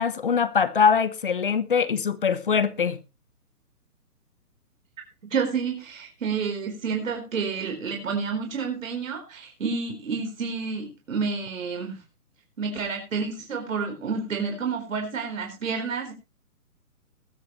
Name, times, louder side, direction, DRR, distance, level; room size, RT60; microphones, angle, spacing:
voice 1, 0.0-3.0, left 6 dB, 35° left, 1.0 m, -22 dB
voice 2, 5.3-12.0 12.6-16.1, right 5 dB, 55° right, 4.2 m, -29 dB
20.5 x 8.3 x 3.1 m
hypercardioid pair, 175°, 46 cm